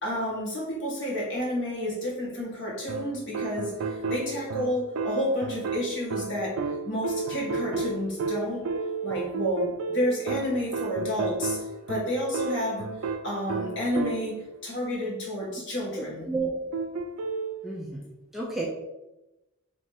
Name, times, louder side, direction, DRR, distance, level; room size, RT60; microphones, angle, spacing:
voice 1, 0.0-6.6 6.8-8.6 9.0-11.6 11.9-12.8 13.2-16.3, equal, 55° left, -4 dB, 1.4 m, -30 dB
sound 1, 2.9-14.5 16.7-17.6, right 4 dB, 75° right, 0.4 m, -32 dB
voice 2, 16.0-16.5 17.6-18.0 18.3-18.7, right 3 dB, ahead, -3 dB, 0.4 m, -31 dB
3.3 x 3.1 x 4.5 m, 0.98 s
head